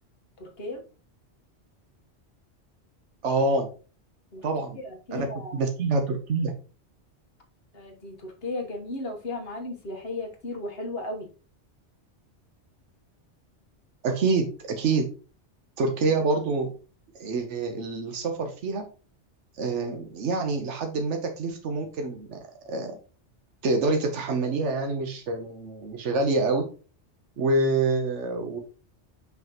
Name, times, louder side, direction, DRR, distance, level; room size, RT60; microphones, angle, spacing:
voice 1, 0.4-0.8 4.3-4.4 4.7-5.6 7.7-11.3, left 2 dB, 60° left, 2 dB, 1.5 m, -35 dB
voice 2, 3.2-3.7 4.4-4.8 5.1-6.5 14.0-15.1 15.8-16.7 17.2-18.8 19.5-22.4 22.6-23.0 23.6-26.6 27.4-28.6, right 3 dB, 85° right, 4 dB, 1.2 m, -26 dB
5.7 x 5.6 x 2.9 m, 0.36 s
omnidirectional pair, 1.2 m